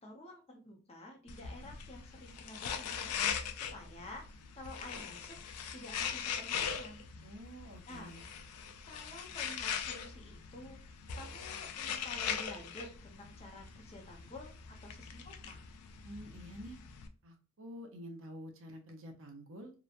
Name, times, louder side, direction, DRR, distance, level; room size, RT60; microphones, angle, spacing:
voice 1, 0.0-3.1 3.5-4.2 4.5-5.4 5.7-7.1 7.9-8.2 8.9-10.8 11.1-15.6, left 1 dB, 25° left, 1 dB, 0.6 m, -50 dB
sound 1, 1.3-17.1, left 7 dB, 85° left, 0.4 m, -41 dB
voice 2, 7.2-8.2 16.0-16.8 17.2-19.7, equal, 60° right, 4 dB, 0.6 m, -48 dB
2.8 x 2.1 x 2.4 m, 0.37 s
head